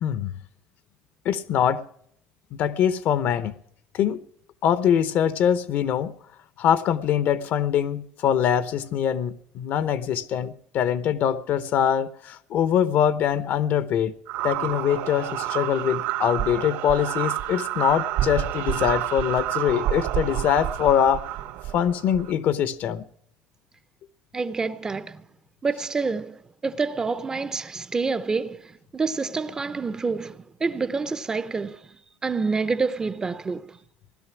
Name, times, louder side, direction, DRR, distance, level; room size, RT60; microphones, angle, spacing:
voice 1, 0.0-0.3 1.2-1.8 2.5-3.5 3.9-4.2 4.6-6.1 6.6-14.1 14.4-21.3 21.7-23.0, left 9 dB, 55° left, 0.8 m, -23 dB
sound 1, 14.3-22.3, right 13 dB, 80° right, 1.8 m, -29 dB
voice 2, 24.3-25.2 25.6-33.8, right 4 dB, 20° right, 0.5 m, -28 dB
16.5 x 12.5 x 6.0 m
cardioid pair, 135°, 4 cm